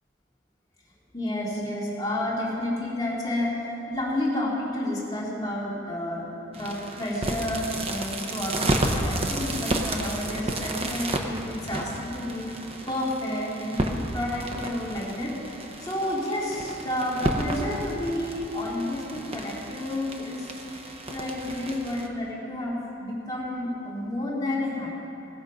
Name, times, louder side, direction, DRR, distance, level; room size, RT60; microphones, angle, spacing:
voice 1, 1.1-6.2 6.5-15.5 15.8-24.9, left 1 dB, 20° left, -7 dB, 2.5 m, -30 dB
sound 1, 6.5-22.1, right 1 dB, 30° right, 0.9 m, -32 dB
20.0 x 7.2 x 5.3 m, 2.8 s
head